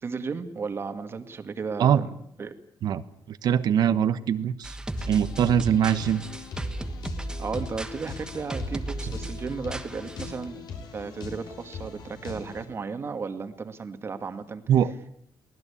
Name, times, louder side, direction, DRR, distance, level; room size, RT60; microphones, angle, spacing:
voice 1, 0.0-2.1 2.4-2.5 7.4-10.6 10.9-14.6, right 5 dB, 35° right, 8 dB, 2.0 m, -34 dB
voice 2, 3.3-4.8 5.1-6.2 14.7-14.9, right 9 dB, 65° right, 12 dB, 1.2 m, -22 dB
sound 1, 4.6-10.4, right 2 dB, 10° right, 1.4 m, -36 dB
sound 2, 4.9-12.6, left 5 dB, 65° left, 6.7 m, -41 dB
23.5 x 18.5 x 8.5 m, 0.70 s
cardioid pair, 150°, 8 cm